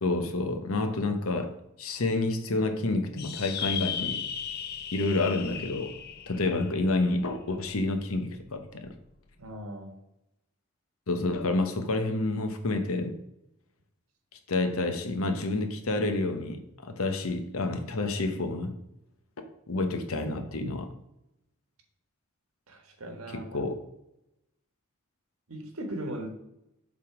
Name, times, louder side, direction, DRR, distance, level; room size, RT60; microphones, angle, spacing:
voice 1, 0.0-4.2 4.9-6.0 6.3-8.9 11.1-13.2 14.5-18.8 19.7-20.9 23.3-23.8, left 2 dB, 80° left, 7 dB, 0.9 m, -29 dB
sound 1, 3.2-7.9, left 8 dB, 45° left, 0.5 m, -36 dB
voice 2, 9.4-9.9 22.7-23.6 25.5-26.3, right 1 dB, 80° right, 4 dB, 1.4 m, -38 dB
7.2 x 3.7 x 4.8 m, 0.85 s
head